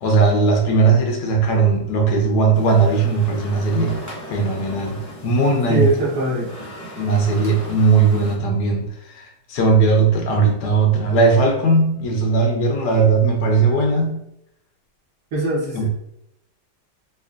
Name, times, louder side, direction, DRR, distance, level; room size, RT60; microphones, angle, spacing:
voice 1, 0.0-4.0 4.3-5.0 5.2-5.9 7.0-14.2 15.7-15.9, right 4 dB, 85° left, 1 dB, 1.4 m, -18 dB
sound 1, 2.5-8.4, equal, 15° left, 0.6 m, -37 dB
voice 2, 5.7-6.5 15.3-15.9, right 1 dB, 75° right, -6 dB, 1.7 m, -21 dB
4.7 x 2.4 x 2.6 m, 0.79 s
omnidirectional pair, 1.7 m